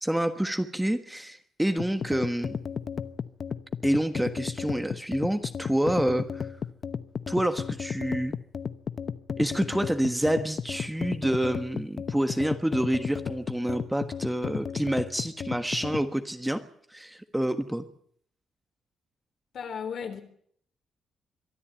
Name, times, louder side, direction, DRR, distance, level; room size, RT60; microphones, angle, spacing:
voice 1, 0.0-2.6 3.8-6.5 7.3-8.3 9.4-16.6 16.9-17.8, right 1 dB, 5° right, 8 dB, 1.4 m, -28 dB
sound 1, 1.8-16.1, left 6 dB, 40° left, 0.9 m, -34 dB
voice 2, 19.5-20.2, left 7 dB, 60° left, 8 dB, 3.8 m, -34 dB
23.5 x 13.5 x 9.1 m, 0.64 s
cardioid pair, 140°, 0 cm